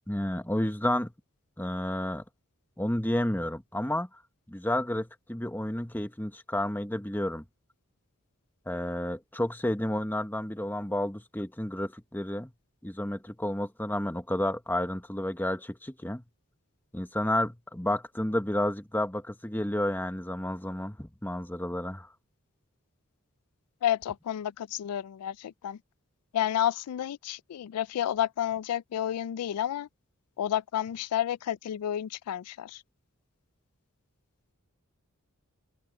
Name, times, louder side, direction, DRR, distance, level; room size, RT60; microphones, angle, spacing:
voice 1, 0.1-1.1 1.6-2.2 2.8-4.1 4.5-7.4 8.7-12.5 12.8-16.2 16.9-22.1, left 1 dB, 10° left, 1.2 m, -31 dB
voice 2, 23.8-25.8 26.3-29.9 30.4-32.8, left 11 dB, 85° left, 0.3 m, -30 dB
open air
head